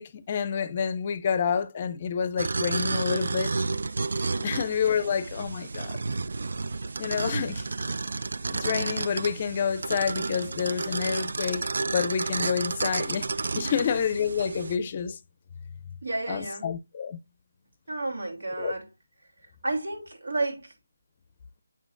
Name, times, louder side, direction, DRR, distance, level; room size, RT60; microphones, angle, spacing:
voice 1, 0.0-3.5 4.4-6.0 7.0-7.7 8.5-13.3 13.5-15.2 16.3-17.2 18.6-18.7, left 7 dB, 30° left, 0.6 m, -28 dB
sound 1, 2.4-14.8, right 3 dB, 60° right, 0.4 m, -31 dB
voice 2, 16.0-16.7 17.9-18.9 19.6-20.7, right 2 dB, 80° right, 3.2 m, -31 dB
7.4 x 6.1 x 2.5 m
figure-of-eight pair, 170°, 0 cm